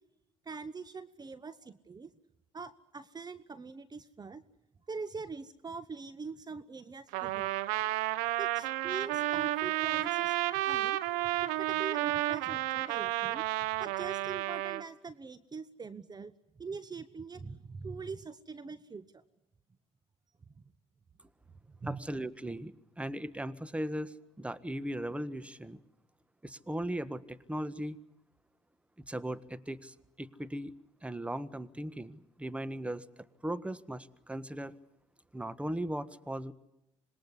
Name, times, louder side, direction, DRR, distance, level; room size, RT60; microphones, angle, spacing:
voice 1, 0.4-2.1 2.5-4.4 4.9-7.5 8.4-10.4 10.6-11.0 11.4-13.4 13.8-16.3 16.6-19.2 21.8-22.0, right 4 dB, 30° right, 13 dB, 1.1 m, -43 dB
Trumpet, 7.1-14.8, right 17 dB, 80° right, 1.0 m, -31 dB
voice 2, 21.8-25.8 26.4-28.0 29.1-30.7 31.0-34.7 35.3-36.5, right 1 dB, 10° right, 14 dB, 1.4 m, -38 dB
26.5 x 21.0 x 9.8 m, 0.87 s
hypercardioid pair, 65°, 14 cm